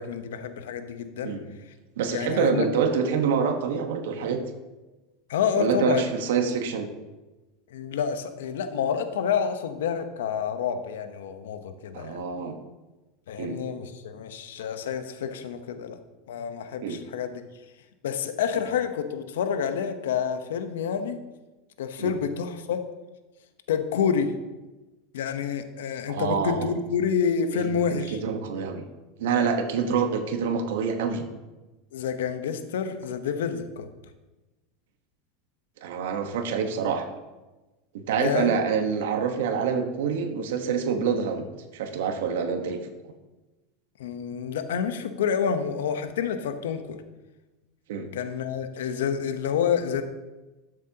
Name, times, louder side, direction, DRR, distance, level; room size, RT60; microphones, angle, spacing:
voice 1, 0.0-1.3 2.1-2.7 5.3-6.1 7.7-12.2 13.3-16.0 16.3-17.4 18.0-21.2 21.8-22.8 23.7-24.3 25.1-28.2 31.9-33.9 38.1-38.5 44.0-47.0 48.1-50.0, left 7 dB, 85° left, 9 dB, 0.9 m, -28 dB
voice 2, 2.0-4.4 5.6-6.9 11.9-12.5 13.4-13.6 16.8-17.0 22.0-22.1 26.1-26.7 27.6-28.9 29.2-31.2 35.8-37.1 37.9-41.5 41.7-42.8 47.9-48.1, right 6 dB, 80° right, 5 dB, 1.2 m, -26 dB
13.0 x 7.5 x 2.9 m, 1.1 s
supercardioid pair, 110°, 0 cm